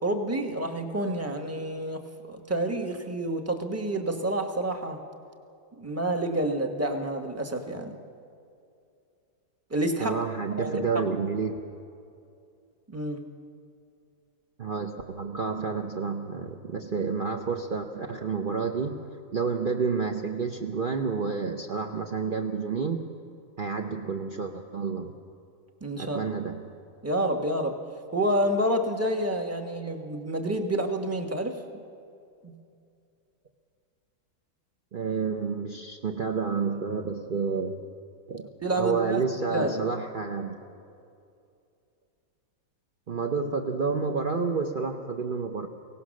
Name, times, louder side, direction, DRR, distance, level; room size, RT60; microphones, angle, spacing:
voice 1, 0.0-5.0 5.8-8.0 9.7-10.2 10.6-11.0 12.9-13.2 25.8-26.2 27.0-27.8 28.1-31.6 32.4-32.5 38.6-39.2 39.5-39.8, right 1 dB, 10° right, 5 dB, 0.9 m, -28 dB
voice 2, 10.0-11.6 14.6-19.0 19.3-23.0 23.6-25.2 26.0-26.7 34.9-37.8 38.3-38.5 38.7-40.6 43.1-45.7, right 5 dB, 55° right, 3 dB, 0.5 m, -29 dB
23.0 x 17.5 x 6.4 m, 2.5 s
omnidirectional pair, 2.0 m